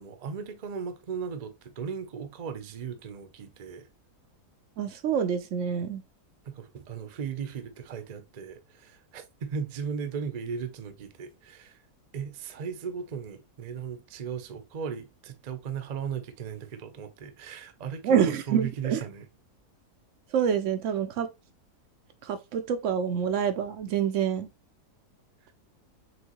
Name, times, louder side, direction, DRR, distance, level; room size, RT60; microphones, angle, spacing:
voice 1, 0.0-3.9 6.4-11.8 12.1-19.3 25.4-25.5, right 6 dB, 85° right, 0.3 m, -37 dB
voice 2, 4.8-6.0 18.0-19.0 20.3-21.3 22.2-24.5, right 8 dB, 65° right, 0.8 m, -27 dB
6.1 x 2.7 x 2.9 m
omnidirectional pair, 1.7 m